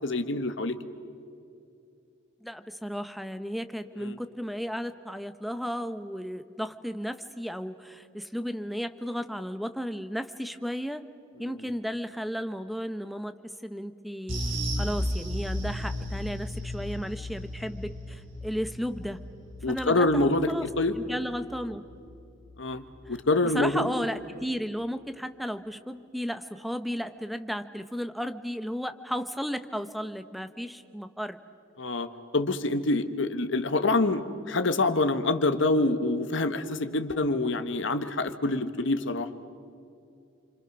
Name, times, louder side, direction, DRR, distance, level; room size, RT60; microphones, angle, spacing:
voice 1, 0.0-0.8 4.0-4.2 11.4-11.6 19.6-20.9 22.6-23.9 31.8-32.1 32.3-39.3, left 2 dB, 65° left, 9 dB, 1.4 m, -26 dB
voice 2, 2.4-11.0 11.4-13.4 13.6-14.4 14.8-19.2 19.7-20.7 20.9-21.8 23.1-23.2 23.4-31.4, equal, ahead, 10 dB, 0.8 m, -34 dB
sound 1, 14.3-23.0 23.2-23.5 23.8-23.9, equal, 70° right, 4.8 m, -35 dB
30.0 x 25.0 x 6.1 m, 2.6 s
head